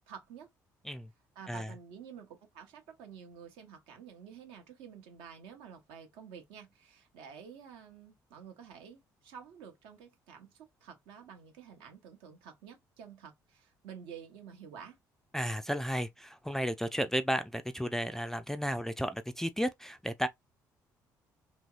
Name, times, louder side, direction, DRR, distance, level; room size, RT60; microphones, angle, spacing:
voice 1, 0.1-0.5 1.3-15.0, right 7 dB, 65° right, 0.8 m, -50 dB
voice 2, 15.3-20.3, equal, 5° left, 0.4 m, -33 dB
2.9 x 2.7 x 2.3 m
figure-of-eight pair, 45°, 10 cm